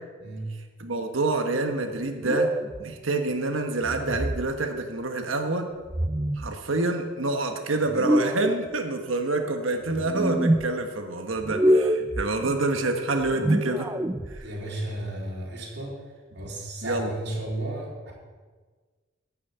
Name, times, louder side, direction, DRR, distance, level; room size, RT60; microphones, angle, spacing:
voice 1, 0.2-0.5 14.4-16.0 16.3-18.1, right 1 dB, 55° right, -4 dB, 3.9 m, -33 dB
voice 2, 0.8-2.5 2.8-5.7 6.4-13.9 14.3-14.5 16.8-17.1, right 2 dB, 85° right, 5 dB, 1.3 m, -27 dB
sound 1, 2.2-2.8 3.8-4.5 5.9-6.5 7.9-8.6 9.9-10.6 11.4-12.3 13.2-14.4, right 1 dB, 15° right, 0.4 m, -25 dB
12.5 x 6.4 x 8.7 m, 1.4 s
head